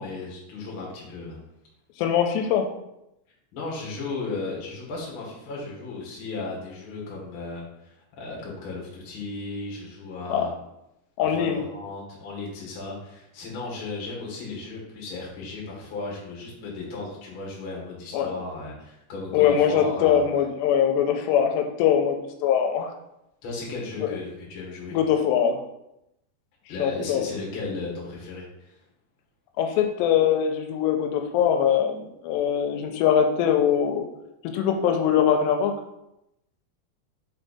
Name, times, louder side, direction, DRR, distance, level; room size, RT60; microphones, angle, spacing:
voice 1, 0.0-1.4 3.5-10.5 11.2-20.2 23.4-25.0 26.7-28.8, left 3 dB, 55° left, -4 dB, 1.5 m, -35 dB
voice 2, 2.0-2.7 10.3-10.5 11.2-11.6 18.1-18.3 19.3-22.2 22.4-22.9 24.0-24.1 24.9-25.6 26.8-27.3 29.6-34.1 34.4-35.7, left 8 dB, 90° left, 5 dB, 2.8 m, -22 dB
5.4 x 4.5 x 4.1 m, 0.85 s
omnidirectional pair, 4.9 m